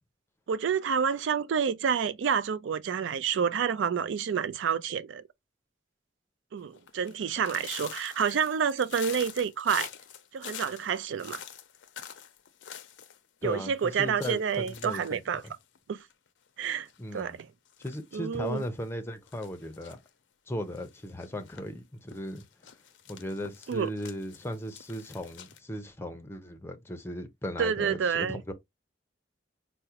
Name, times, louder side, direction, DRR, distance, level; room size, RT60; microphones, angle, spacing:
voice 1, 0.5-5.2 6.5-9.9 10.3-11.4 13.4-15.4 15.9-16.0 16.6-17.5 18.1-18.6 23.7-23.9 27.6-28.4, right 7 dB, 85° right, 0.4 m, -29 dB
sound 1, 6.7-13.2 13.4-13.5 13.8-13.9 14.2-16.3 16.6-17.2 17.7-18.7 19.3-20.1 20.7-21.6 22.1-25.6, left 9 dB, 80° left, 0.5 m, -46 dB
voice 2, 14.0-15.5 17.0-17.4 17.8-20.0 20.5-22.4 23.1-28.5, equal, 15° left, 0.5 m, -37 dB
4.7 x 2.0 x 2.7 m
head